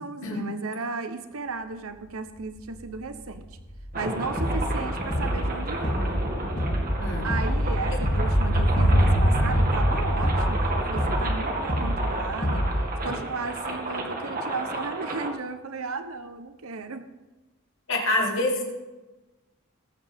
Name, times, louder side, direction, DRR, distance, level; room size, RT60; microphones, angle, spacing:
voice 1, 0.0-3.5 3.9-6.2 7.2-12.7 13.0-17.1, right 4 dB, 75° right, 9 dB, 0.9 m, -35 dB
sound 1, 2.4-2.5 2.8-13.1 13.4-13.5, equal, 80° left, 4.6 m, -27 dB
sound 2, 3.9-15.3, right 2 dB, 40° right, 1.9 m, -32 dB
sound 3, 4.4-4.8 5.1-5.5 5.8-6.2 6.6-6.9 7.3-7.7 8.0-8.4 8.8-9.1 9.5-9.9 10.2-10.6 11.0-11.3 11.7-12.1 12.4-12.8, equal, 20° left, 2.5 m, -27 dB
voice 2, 17.9-18.6, left 2 dB, 65° left, -2 dB, 3.4 m, -26 dB
21.0 x 8.9 x 3.6 m, 1.1 s
head